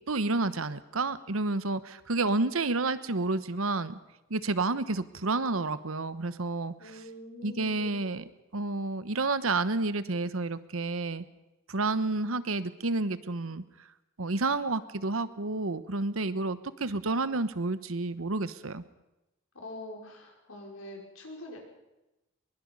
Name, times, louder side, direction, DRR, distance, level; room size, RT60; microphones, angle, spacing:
voice 1, 0.0-4.0 4.3-6.7 7.4-8.2 8.5-11.3 11.7-13.6 14.2-18.8, right 3 dB, 85° right, 14 dB, 1.1 m, -30 dB
voice 2, 6.8-8.2 19.5-21.6, left 1 dB, 85° left, 0 dB, 5.6 m, -44 dB
22.5 x 22.0 x 5.5 m, 0.96 s
head